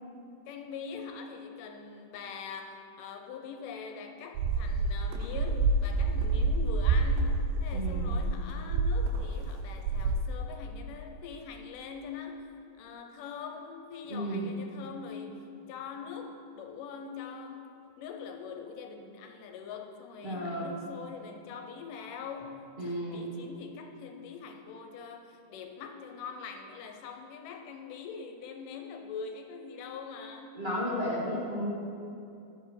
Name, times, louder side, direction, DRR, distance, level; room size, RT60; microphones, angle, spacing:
voice 1, 0.5-12.5 12.8-22.6 22.8-30.6, left 6 dB, 80° left, 5 dB, 2.3 m, -43 dB
sound 1, 4.4-9.5 9.8-10.2, right 3 dB, 85° right, 2.1 m, -28 dB
voice 2, 7.7-8.0 14.1-14.4 20.2-20.7 22.8-23.2 30.5-31.7, equal, 30° right, -8 dB, 0.9 m, -33 dB
11.5 x 4.8 x 5.7 m, 2.7 s
omnidirectional pair, 3.8 m